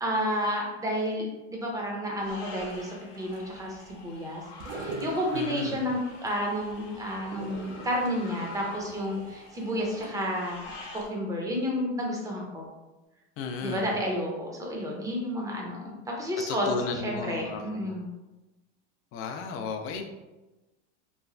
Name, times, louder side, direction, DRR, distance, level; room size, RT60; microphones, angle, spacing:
voice 1, 0.0-12.7 13.6-16.7 17.0-18.1, equal, 10° right, -1 dB, 0.6 m, -31 dB
sound 1, 2.2-11.1, left 3 dB, 65° left, 0.8 m, -47 dB
sound 2, 2.7-10.6 11.0-11.1, right 2 dB, 55° right, 0.6 m, -44 dB
voice 2, 5.3-5.8 13.4-13.9 16.5-17.9 19.1-20.0, left 4 dB, 40° left, 5 dB, 0.4 m, -34 dB
3.1 x 2.2 x 2.4 m, 1.1 s
hypercardioid pair, 105°, 35 cm